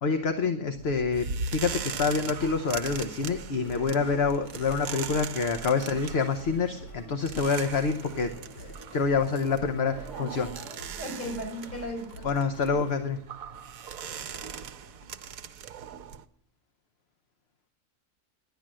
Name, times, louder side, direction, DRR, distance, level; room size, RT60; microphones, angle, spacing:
voice 1, 0.0-10.5 12.2-13.2, left 5 dB, 50° left, 7 dB, 1.0 m, -27 dB
sound 1, 0.7-16.2, right 6 dB, 70° right, 1.1 m, -40 dB
sound 2, 2.1-14.2, right 2 dB, 75° left, 3.4 m, -47 dB
voice 2, 10.0-12.3, equal, 10° left, -1 dB, 5.9 m, -38 dB
11.0 x 10.5 x 7.5 m, 0.67 s
omnidirectional pair, 1.6 m